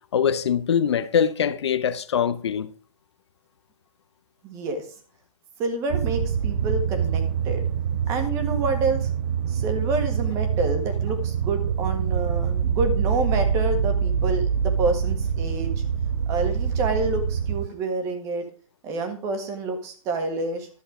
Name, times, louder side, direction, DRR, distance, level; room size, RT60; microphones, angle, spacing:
voice 1, 0.1-2.7, left 8 dB, 50° left, 1.0 m, -23 dB
voice 2, 4.4-4.9 5.6-7.6 8.1-9.1 9.5-15.8 16.3-18.5 18.8-20.7, right 3 dB, 15° right, 1.7 m, -28 dB
sound 1, 5.9-17.7, right 7 dB, 35° right, 0.6 m, -25 dB
12.5 x 7.2 x 5.0 m
hypercardioid pair, 165°, 18 cm